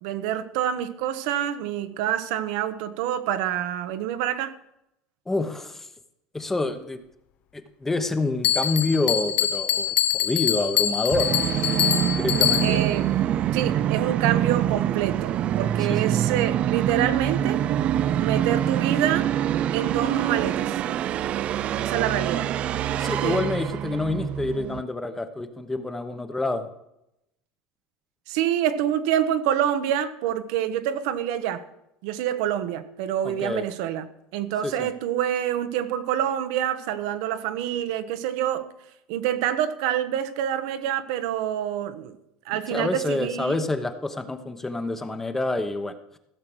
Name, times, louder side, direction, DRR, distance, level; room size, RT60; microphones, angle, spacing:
voice 1, 0.0-4.5 12.6-13.1 13.5-17.6 18.2-19.3 19.7-20.8 21.8-22.5 23.1-23.5 28.3-31.6 32.0-34.1 34.3-38.7 39.1-42.2 42.4-43.6, right 10 dB, 75° right, 1.0 m, -27 dB
voice 2, 5.3-5.9 6.3-7.0 7.5-11.8 12.1-12.8 15.9-16.0 22.9-26.7 33.2-33.6 34.6-34.9 42.5-46.2, left 2 dB, 10° left, 0.9 m, -27 dB
Bell, 8.4-13.0, left 10 dB, 50° left, 0.7 m, -24 dB
Musical instrument, 11.1-24.8, right 11 dB, 40° right, 0.4 m, -25 dB
15.5 x 6.6 x 6.2 m
supercardioid pair, 135°, 3 cm